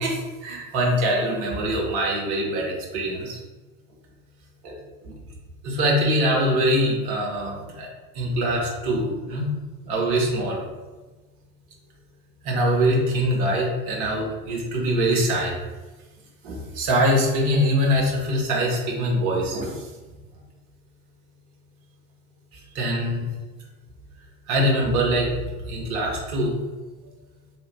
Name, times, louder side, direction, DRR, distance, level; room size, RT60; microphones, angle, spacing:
voice 1, 0.0-3.4 4.6-4.8 5.0-5.1 5.6-7.9 8.1-9.5 9.9-10.6 12.4-15.5 16.4-19.8 22.7-23.2 24.5-25.3 25.7-26.6, equal, 45° right, -2 dB, 1.2 m, -23 dB
3.5 x 3.1 x 3.0 m, 1.2 s
figure-of-eight pair, 80°, 44 cm